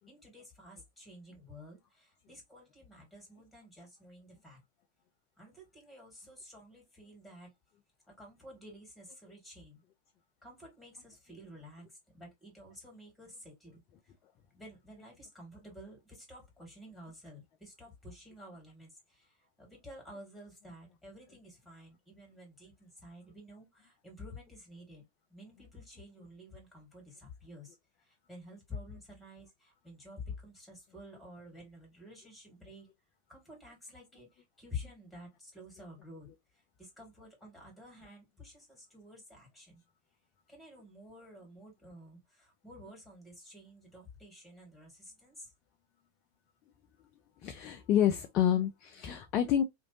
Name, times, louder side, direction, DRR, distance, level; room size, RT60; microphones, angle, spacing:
voice 1, 0.1-4.6 5.4-7.5 8.1-9.8 10.4-14.1 14.5-32.9 33.3-36.3 36.5-39.8 40.5-45.5, left 2 dB, 5° left, 2.0 m, -51 dB
voice 2, 47.4-49.6, left 10 dB, 35° left, 0.4 m, -28 dB
2.9 x 2.6 x 2.8 m
figure-of-eight pair, 90°, 0 cm